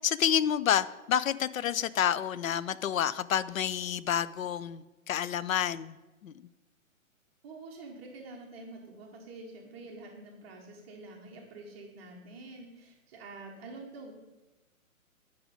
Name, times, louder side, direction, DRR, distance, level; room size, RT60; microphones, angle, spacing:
voice 1, 0.0-6.3, left 9 dB, 65° left, 17 dB, 0.5 m, -29 dB
voice 2, 7.4-14.1, right 2 dB, 10° right, -5 dB, 0.6 m, -47 dB
9.3 x 5.0 x 5.4 m, 1.1 s
figure-of-eight pair, 130°, 43 cm